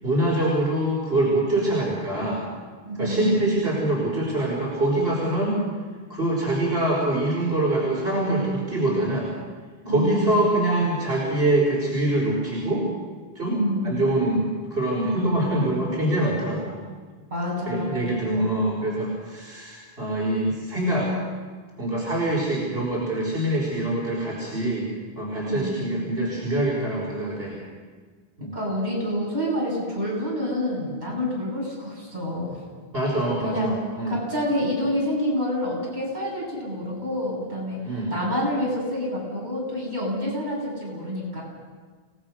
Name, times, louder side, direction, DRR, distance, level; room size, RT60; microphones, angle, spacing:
voice 1, 0.0-2.4 3.0-5.6 6.1-9.3 9.9-12.8 13.4-13.6 13.8-16.8 17.7-21.1 21.8-24.9 25.2-27.6 28.4-28.6 32.9-34.1 37.8-38.1, right 1 dB, 70° right, -5 dB, 5.7 m, -24 dB
voice 2, 2.8-3.4 9.8-10.4 13.5-14.0 17.3-18.5 25.4-26.0 28.5-32.6 33.4-33.8 34.1-37.8 38.1-41.4, equal, 45° right, -5 dB, 8.1 m, -28 dB
29.0 x 18.5 x 6.6 m, 1.5 s
omnidirectional pair, 1.0 m